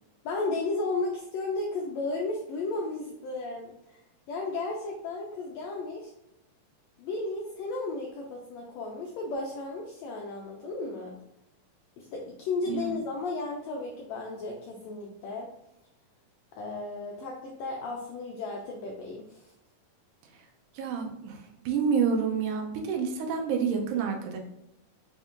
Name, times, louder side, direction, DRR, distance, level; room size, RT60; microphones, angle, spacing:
voice 1, 0.2-4.0 4.3-6.1 7.0-11.1 12.0-15.5 16.5-19.5, left 3 dB, 85° left, -1 dB, 1.5 m, -34 dB
voice 2, 12.7-13.0 20.8-21.4 21.7-24.4, right 6 dB, 80° right, 2 dB, 2.1 m, -28 dB
5.2 x 2.5 x 3.5 m, 0.83 s
omnidirectional pair, 3.7 m